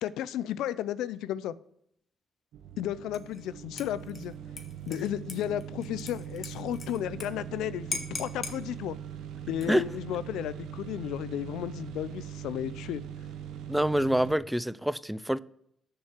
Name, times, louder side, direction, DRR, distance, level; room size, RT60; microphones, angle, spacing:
voice 1, 0.0-1.5 2.8-4.3 4.9-9.0 9.5-13.0, left 11 dB, 85° left, 0.4 m, -33 dB
sound 1, 2.5-14.4, right 9 dB, 80° right, 0.6 m, -41 dB
Dishes pots and pans / Liquid, 3.1-3.4 3.8-7.3 7.5-7.6 7.9-8.6 9.5-10.0, left 4 dB, 35° left, 1.4 m, -40 dB
voice 2, 13.7-15.4, equal, 5° right, 0.3 m, -26 dB
6.8 x 5.4 x 7.2 m
cardioid pair, 90°, 0 cm